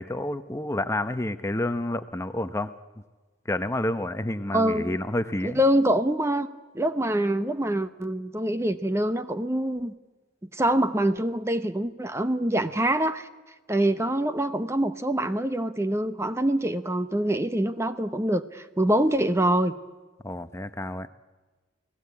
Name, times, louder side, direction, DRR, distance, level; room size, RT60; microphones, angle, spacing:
voice 1, 0.0-2.7 3.5-5.6 20.2-21.1, left 1 dB, 15° left, 10 dB, 0.8 m, -29 dB
voice 2, 4.5-5.0 5.4-6.5 6.7-9.9 10.5-13.3 13.7-19.7, right 1 dB, 15° right, 10 dB, 0.8 m, -25 dB
28.5 x 18.5 x 8.5 m, 1.3 s
head